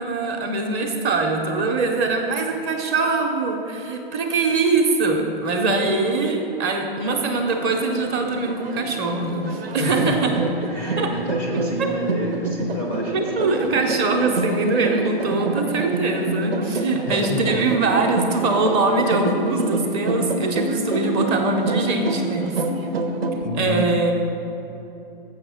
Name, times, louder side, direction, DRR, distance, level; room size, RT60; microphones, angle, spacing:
voice 1, 0.0-10.4 11.0-11.1 11.8-11.9 13.1-22.6 23.5-24.1, right 3 dB, 20° right, 3 dB, 0.7 m, -22 dB
sound 1, 7.1-23.5, right 2 dB, 90° right, 0.9 m, -27 dB
voice 2, 9.8-13.2 17.1-17.6 23.4-23.8, equal, 10° left, -1 dB, 0.4 m, -29 dB
6.8 x 6.5 x 6.3 m, 2.9 s
hypercardioid pair, 150°, 29 cm